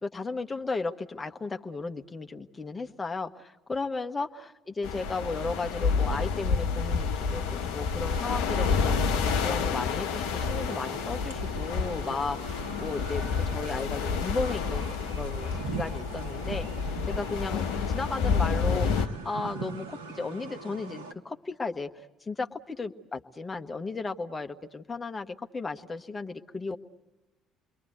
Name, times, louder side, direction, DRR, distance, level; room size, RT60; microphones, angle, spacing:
voice 1, 0.0-14.9 15.2-16.7 17.1-17.6 17.9-21.9 22.3-26.8, left 3 dB, 25° left, 5 dB, 1.4 m, -35 dB
sound 1, 4.8-19.1, left 5 dB, 70° left, 1.0 m, -29 dB
sound 2, 10.4-21.1, right 4 dB, 75° right, 1.4 m, -41 dB
29.0 x 22.5 x 8.1 m, 1.1 s
figure-of-eight pair, 50°, 0 cm